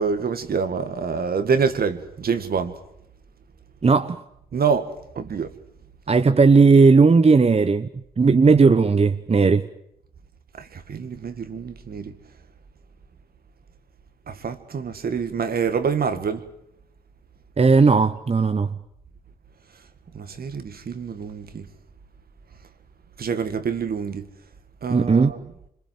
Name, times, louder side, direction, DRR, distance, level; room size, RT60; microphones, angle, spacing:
voice 1, 0.0-2.7 4.5-4.9 5.2-5.5 10.6-12.2 14.3-16.4 20.1-21.7 23.2-24.3 24.8-25.4, right 6 dB, 60° right, 2.0 m, -26 dB
voice 2, 3.8-4.2 6.1-7.9 8.2-9.6 17.6-18.7 24.9-25.3, right 4 dB, 35° right, 1.0 m, -16 dB
26.0 x 22.0 x 7.7 m
supercardioid pair, 45°, 18 cm